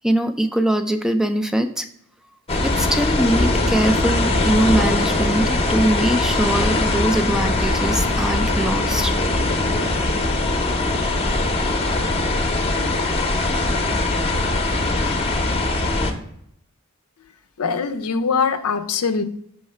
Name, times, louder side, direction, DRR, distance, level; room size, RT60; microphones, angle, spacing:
voice 1, 0.0-1.9 2.6-9.2, right 1 dB, 5° right, 8 dB, 0.3 m, -22 dB
sound 1, 2.5-16.1, left 2 dB, 30° left, 0.7 m, -21 dB
voice 2, 17.6-19.2, left 5 dB, 85° left, 9 dB, 0.5 m, -22 dB
5.7 x 3.2 x 5.5 m, 0.70 s
head